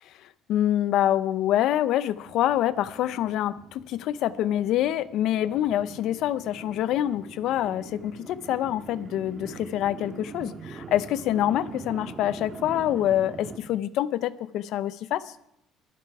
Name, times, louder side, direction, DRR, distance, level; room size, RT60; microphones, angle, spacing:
voice 1, 0.5-15.2, left 12 dB, 60° left, 16 dB, 0.6 m, -26 dB
sound 1, 2.1-13.6, right 5 dB, 25° right, 1.5 m, -43 dB
22.5 x 10.5 x 4.7 m, 0.80 s
cardioid pair, 155°, 0 cm